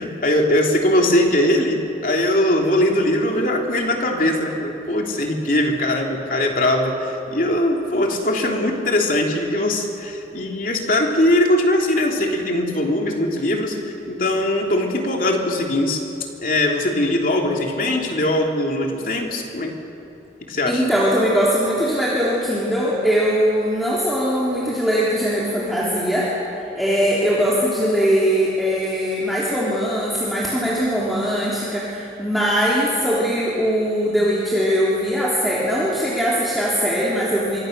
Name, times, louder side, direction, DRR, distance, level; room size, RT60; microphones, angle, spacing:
voice 1, 0.0-16.0 16.4-19.8 20.4-20.8, left 1 dB, 50° left, 1 dB, 3.0 m, -21 dB
voice 2, 20.7-26.3 26.7-37.6, equal, ahead, -7 dB, 3.2 m, -21 dB
26.0 x 24.0 x 6.7 m, 2.9 s
head